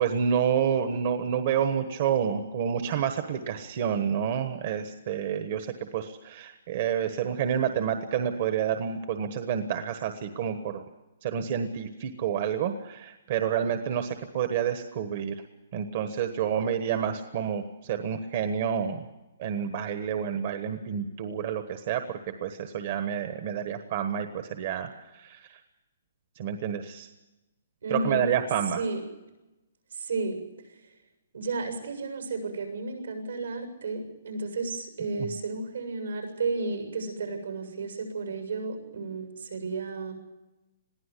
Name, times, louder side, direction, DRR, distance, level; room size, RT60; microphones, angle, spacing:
voice 1, 0.0-10.8 11.2-15.3 15.7-19.0 19.4-25.6 26.4-27.1 27.9-28.8 35.2-35.3, right 8 dB, 45° right, 8 dB, 1.3 m, -29 dB
voice 2, 27.8-28.3 28.8-29.0 29.9-30.4 31.3-40.1, right 3 dB, 85° right, 5 dB, 7.0 m, -32 dB
22.0 x 15.5 x 8.4 m, 1.0 s
hypercardioid pair, 160°, 0 cm